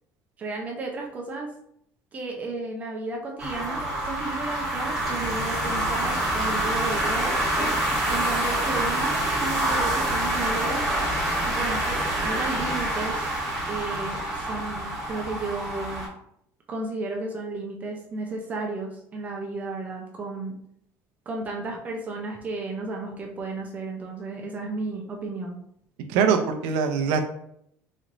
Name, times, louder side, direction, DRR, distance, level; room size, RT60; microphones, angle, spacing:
voice 1, 0.4-1.5 2.1-7.3 8.1-10.8 11.5-13.3 13.7-16.1 16.7-20.6 21.3-25.6, right 3 dB, 25° right, 0 dB, 0.5 m, -33 dB
sound 1, 3.4-16.1, right 1 dB, 5° right, 1.4 m, -26 dB
voice 2, 26.1-27.2, right 6 dB, 85° right, 6 dB, 0.6 m, -22 dB
4.1 x 3.1 x 2.5 m, 0.71 s
cardioid pair, 170°, 6 cm